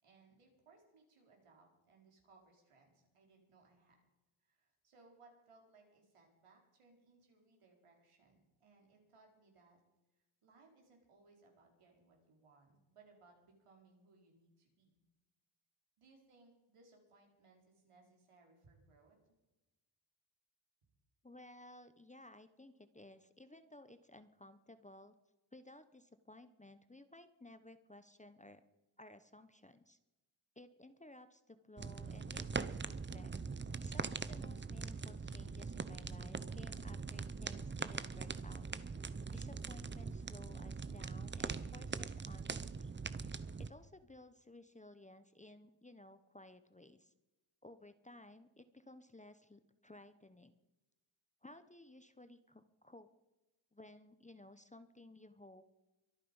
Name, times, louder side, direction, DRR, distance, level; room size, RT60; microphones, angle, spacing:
voice 1, 0.0-4.0 4.4-9.8 10.4-14.9 16.0-19.4, right 3 dB, 85° right, 0 dB, 4.8 m, -66 dB
voice 2, 21.2-25.1 25.5-28.6 29.0-30.0 30.6-33.3 33.8-38.7 39.3-43.0 43.6-47.1 47.6-50.5 51.4-53.1 53.7-55.6, left 1 dB, 15° left, 11 dB, 0.7 m, -57 dB
sound 1, 31.8-43.7, right 4 dB, 25° right, 0.6 m, -42 dB
23.5 x 9.2 x 5.5 m, 1.0 s
wide cardioid pair, 155°, 50 cm